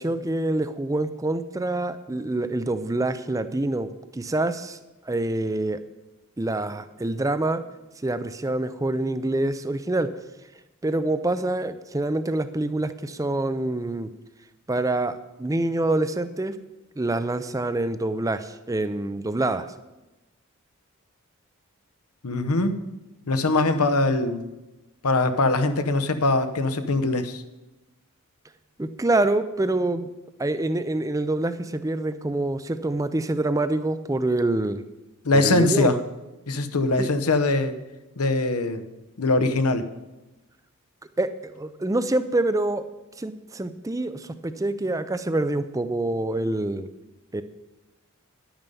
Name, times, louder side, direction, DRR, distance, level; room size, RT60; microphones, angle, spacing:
voice 1, 0.0-4.8 5.1-5.8 6.4-7.6 8.0-10.1 10.8-14.1 14.7-16.5 17.0-19.7 28.8-30.1 30.4-34.8 35.3-35.9 37.0-37.1 41.2-42.8 43.2-46.9 47.3-47.4, right 2 dB, 15° right, 12 dB, 0.4 m, -26 dB
voice 2, 22.2-22.8 23.3-24.4 25.0-27.4 35.2-35.9 36.5-37.7 38.2-38.8 39.2-39.8, left 2 dB, 85° left, 10 dB, 0.9 m, -22 dB
10.5 x 8.9 x 5.4 m, 1.0 s
head